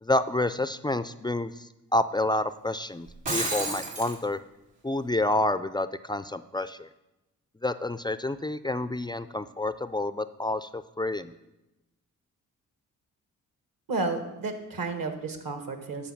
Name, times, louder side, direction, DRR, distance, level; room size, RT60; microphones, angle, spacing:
voice 1, 0.0-4.4 4.8-6.9 7.6-11.3, left 2 dB, 10° left, 13 dB, 0.4 m, -29 dB
Shatter, 3.1-4.2, right 2 dB, 75° right, 2.4 m, -30 dB
voice 2, 13.9-16.1, right 3 dB, 55° right, 6 dB, 1.5 m, -32 dB
12.5 x 4.3 x 5.8 m, 0.95 s
hypercardioid pair, 40°, 40 cm